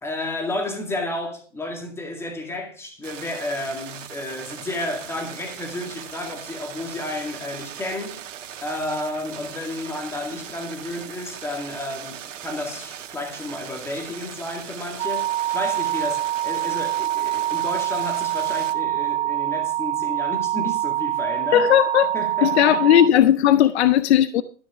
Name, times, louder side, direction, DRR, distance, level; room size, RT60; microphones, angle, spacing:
voice 1, 0.0-8.2 8.6-21.7 22.1-22.9, left 1 dB, 5° left, 2.1 m, -31 dB
sound 1, 3.0-18.7, right 9 dB, 75° right, 1.8 m, -39 dB
sound 2, 15.0-23.1, right 14 dB, 50° right, 0.6 m, -25 dB
voice 2, 21.5-22.1 22.4-24.4, left 11 dB, 60° left, 0.8 m, -16 dB
13.0 x 6.0 x 6.1 m
hypercardioid pair, 145°, 38 cm